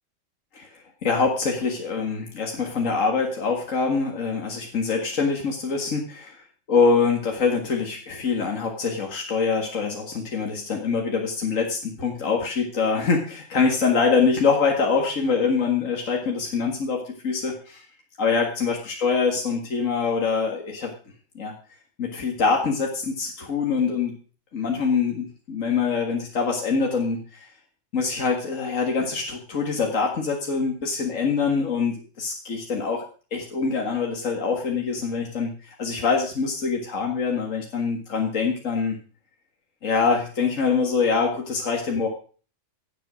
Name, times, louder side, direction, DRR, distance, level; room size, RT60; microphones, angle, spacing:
voice 1, 1.0-17.8 18.2-20.9 21.4-21.5 22.0-24.1 24.5-27.5 27.9-39.0 39.8-42.1, left 5 dB, 80° left, 1 dB, 2.2 m, -24 dB
16.0 x 8.2 x 6.2 m, 0.41 s
omnidirectional pair, 1.3 m